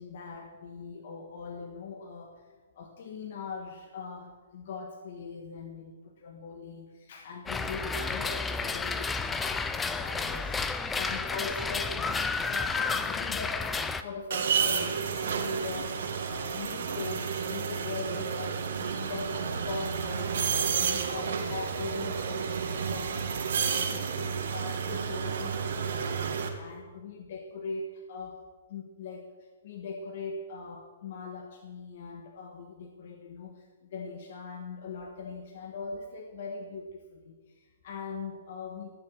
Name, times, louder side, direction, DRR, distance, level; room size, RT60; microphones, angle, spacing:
voice 1, 0.0-26.2 26.5-39.0, left 4 dB, 55° left, 3 dB, 1.4 m, -41 dB
sound 1, 7.5-14.0, left 4 dB, 10° left, 0.5 m, -31 dB
sound 2, 14.3-26.5, right 6 dB, 65° right, 1.8 m, -31 dB
13.5 x 7.2 x 7.2 m, 1.4 s
hypercardioid pair, 150°, 0 cm